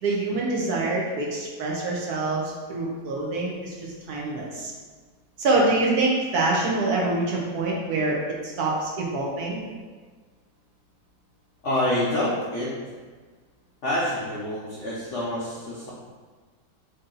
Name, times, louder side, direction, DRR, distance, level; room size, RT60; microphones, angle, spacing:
voice 1, 0.0-4.7 5.4-8.2 8.4-9.6, right 2 dB, 65° right, -3 dB, 1.1 m, -25 dB
voice 2, 11.6-12.7 13.8-15.9, left 1 dB, 65° left, -7 dB, 0.7 m, -27 dB
3.9 x 2.7 x 3.7 m, 1.4 s
omnidirectional pair, 1.9 m